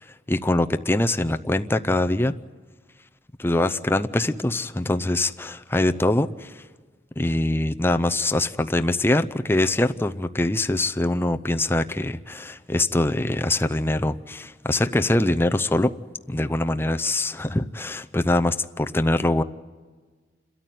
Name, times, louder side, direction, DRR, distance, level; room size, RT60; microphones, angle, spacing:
voice 1, 0.3-2.3 3.4-6.6 7.2-15.9 16.3-19.4, left 1 dB, 10° left, 8 dB, 0.6 m, -23 dB
28.5 x 13.5 x 9.3 m, 1.4 s
head